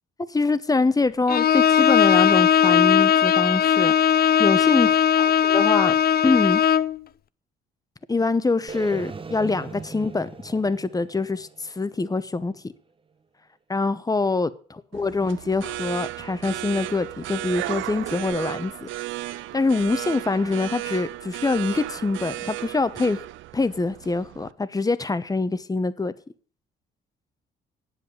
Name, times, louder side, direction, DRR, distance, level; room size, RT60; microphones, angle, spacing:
voice 1, 0.3-3.9 4.4-4.9 5.5-6.0 6.2-6.6 8.1-12.5 13.7-18.9 19.5-23.2 23.5-26.1, left 3 dB, 20° left, 0.9 m, -24 dB
Bowed string instrument, 1.3-7.0, left 8 dB, 50° left, 0.5 m, -18 dB
sound 1, 8.7-12.7, right 4 dB, 25° right, 0.7 m, -39 dB
sound 2, 14.9-24.5, right 15 dB, 80° right, 0.5 m, -34 dB
9.2 x 7.8 x 7.9 m
cardioid pair, 90°, 20 cm